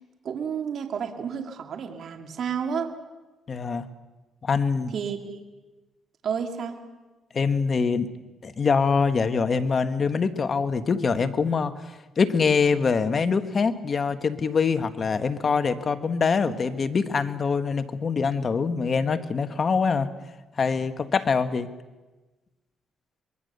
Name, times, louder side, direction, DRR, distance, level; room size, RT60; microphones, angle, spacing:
voice 1, 0.2-2.9 4.9-5.4 6.2-6.8, right 7 dB, 60° right, 4 dB, 2.4 m, -31 dB
voice 2, 3.5-3.9 4.4-4.9 7.3-8.1 8.4-20.1 20.6-21.7, left 5 dB, 40° left, 9 dB, 1.5 m, -24 dB
24.0 x 22.5 x 6.8 m, 1.2 s
cardioid pair, 90°, 0 cm